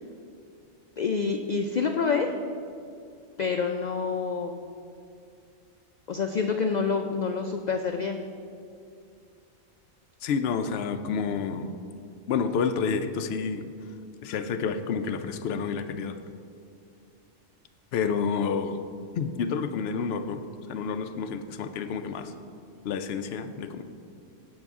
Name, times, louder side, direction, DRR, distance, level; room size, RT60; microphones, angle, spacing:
voice 1, 1.0-2.3 3.4-4.7 6.1-8.2, left 5 dB, 90° left, 4 dB, 0.3 m, -27 dB
voice 2, 10.2-11.7 12.3-13.7 14.2-16.2 17.9-18.8 19.1-20.4 20.7-22.3 22.8-23.8, left 6 dB, 60° left, 8 dB, 0.7 m, -29 dB
16.0 x 5.5 x 3.6 m, 2.4 s
omnidirectional pair, 1.3 m